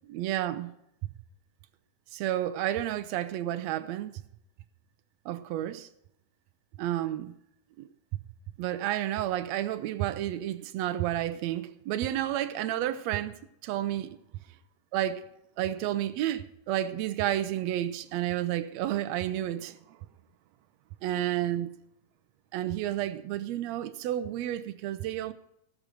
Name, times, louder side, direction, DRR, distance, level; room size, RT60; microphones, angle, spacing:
voice 1, 0.1-0.7 2.1-4.1 5.2-5.9 6.8-7.3 7.8-7.9 8.6-14.2 14.9-15.2 15.6-20.0 21.0-21.7 22.5-25.3, right 12 dB, 85° right, 1.5 m, -31 dB
18.0 x 6.4 x 7.7 m
omnidirectional pair, 3.8 m